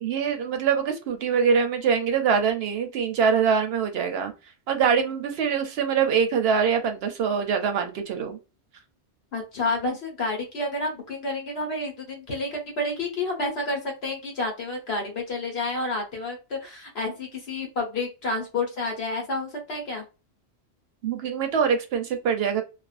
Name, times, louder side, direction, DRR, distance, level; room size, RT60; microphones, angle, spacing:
voice 1, 0.0-4.3 4.7-8.4 21.0-22.6, right 6 dB, 70° right, 6 dB, 0.8 m, -24 dB
voice 2, 9.3-20.0, left 2 dB, 70° left, 1 dB, 1.2 m, -30 dB
2.4 x 2.3 x 2.4 m, 0.30 s
omnidirectional pair, 1.1 m